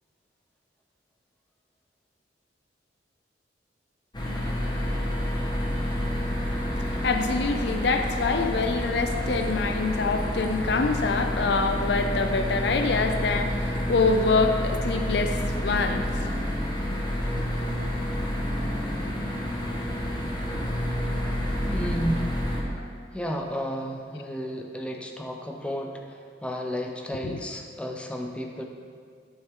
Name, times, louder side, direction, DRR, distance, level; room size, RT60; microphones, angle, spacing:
sound 1, 4.1-22.6, equal, 25° left, 1.1 m, -29 dB
voice 1, 7.0-16.1 27.2-27.4, left 4 dB, 65° left, 6 dB, 0.5 m, -25 dB
voice 2, 21.7-22.3 23.1-28.6, equal, 5° left, 2 dB, 0.6 m, -32 dB
11.5 x 6.2 x 3.7 m, 2.2 s
head